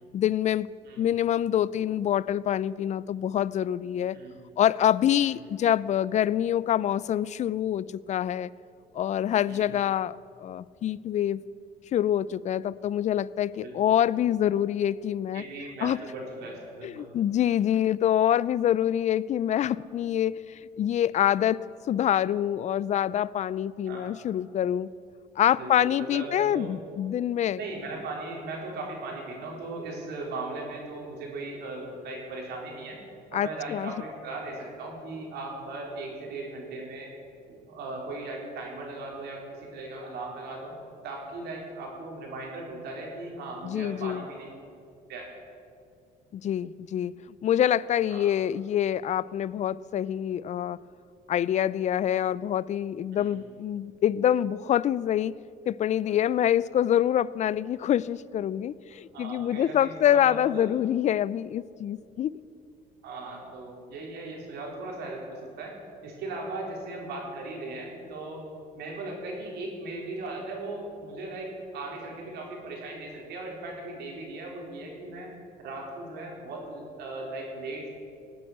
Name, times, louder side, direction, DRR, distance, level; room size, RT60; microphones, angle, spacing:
voice 1, 0.1-0.7 1.0-4.2 4.6-8.5 8.9-11.4 11.9-15.4 15.8-16.0 16.8-21.6 21.9-24.9 25.4-27.6 33.3-33.9 43.6-44.2 46.3-47.1 47.4-50.8 51.3-55.3 55.7-62.3, left 10 dB, 45° left, 20 dB, 0.4 m, -26 dB
voice 2, 15.3-17.1 19.6-19.8 23.9-24.1 25.5-26.7 27.5-33.0 33.3-37.1 37.5-40.7 41.0-44.5 45.1-45.3 48.1-48.3 53.1-53.3 56.1-56.2 59.1-60.7 63.0-65.7 66.0-68.4 68.7-75.3 75.6-77.9, right 2 dB, 75° right, -1 dB, 4.1 m, -38 dB
18.0 x 8.7 x 8.1 m, 2.5 s
cardioid pair, 110°, 17 cm